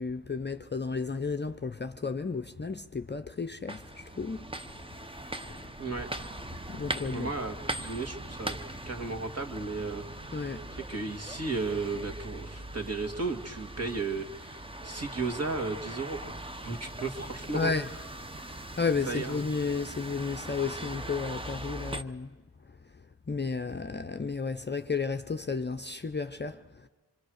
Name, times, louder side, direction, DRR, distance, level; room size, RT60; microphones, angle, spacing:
voice 1, 0.0-4.4 5.5-5.7 6.7-7.3 10.3-10.6 17.5-17.9 18.5-22.3 23.3-26.6, left 4 dB, 25° left, 0.7 m, -33 dB
sound 1, 3.7-22.0, right 1 dB, 15° right, 0.9 m, -40 dB
voice 2, 7.1-8.6 8.9-10.0 10.7-16.4 16.6-17.7 19.1-19.4, right 3 dB, 35° right, 2.5 m, -34 dB
26.0 x 24.0 x 6.5 m
cardioid pair, 75°, 41 cm